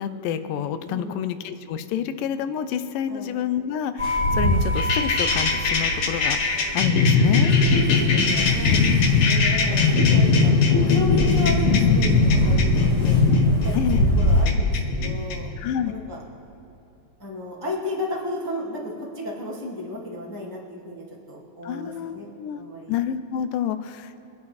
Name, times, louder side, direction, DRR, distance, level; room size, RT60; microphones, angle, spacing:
voice 1, 0.0-7.5 8.9-9.1 13.7-14.1 15.6-15.9 21.6-22.6 22.9-24.2, left 9 dB, 80° left, 11 dB, 2.2 m, -29 dB
voice 2, 0.9-1.3 3.1-3.3 8.0-10.5 10.8-13.2 13.6-15.5 15.8-16.2 17.2-22.9, left 1 dB, 15° left, -4 dB, 0.8 m, -34 dB
sound 1, 4.0-14.5, equal, 35° right, 2.4 m, -26 dB
sound 2, 4.8-15.3, left 4 dB, 60° left, 1.5 m, -20 dB
25.5 x 8.7 x 4.2 m, 3.0 s
omnidirectional pair, 4.1 m